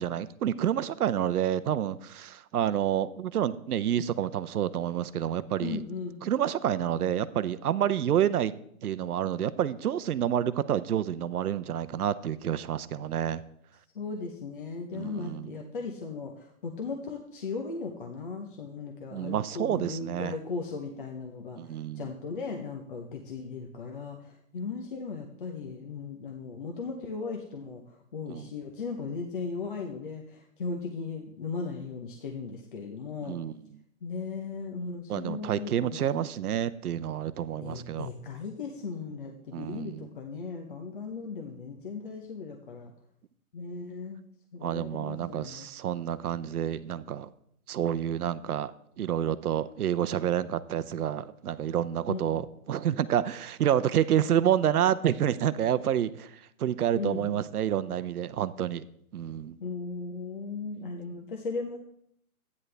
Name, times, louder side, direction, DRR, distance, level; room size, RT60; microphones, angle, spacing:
voice 1, 0.0-5.8 6.2-8.5 8.8-13.4 14.9-15.5 19.1-20.3 21.6-22.1 28.3-28.5 33.3-33.5 35.1-38.1 39.5-40.1 44.6-47.3 47.7-48.7 49.0-56.3 56.6-58.8 59.1-59.6, right 10 dB, 80° right, 15 dB, 0.7 m, -28 dB
voice 2, 5.6-6.2 13.9-21.6 21.9-33.4 34.0-36.2 37.6-42.9 43.5-44.2 44.5-45.7 52.1-52.3 57.0-57.3 59.6-61.8, left 4 dB, 35° left, 3 dB, 0.8 m, -37 dB
12.5 x 9.6 x 3.3 m, 0.71 s
hypercardioid pair, 175°, 43 cm